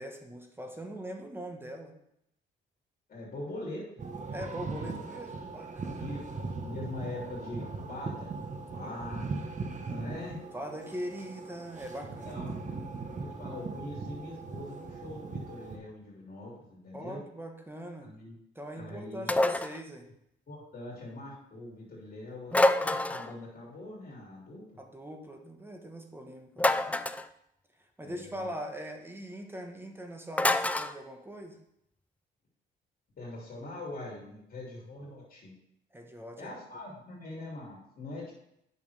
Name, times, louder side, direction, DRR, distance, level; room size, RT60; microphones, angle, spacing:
voice 1, 0.0-2.0 4.3-6.1 8.8-9.0 10.5-12.4 12.8-12.9 16.9-18.1 18.5-20.1 24.8-26.9 27.8-31.6 35.9-36.5, equal, 10° right, 3 dB, 1.3 m, -42 dB
voice 2, 3.1-3.8 5.9-6.2 6.6-8.3 8.7-9.5 9.8-10.4 12.2-12.7 13.2-17.2 18.0-18.3 18.7-19.3 20.5-24.6 28.0-28.5 33.2-35.5 36.4-38.3, left 2 dB, 50° left, -4 dB, 3.0 m, -42 dB
sound 1, 4.0-15.8, right 3 dB, 40° right, 1.3 m, -39 dB
sound 2, 19.3-19.8 22.5-23.3 26.6-27.3 30.4-30.9, left 1 dB, 5° left, 0.3 m, -26 dB
8.8 x 6.4 x 3.4 m, 0.78 s
cardioid pair, 90°, 20 cm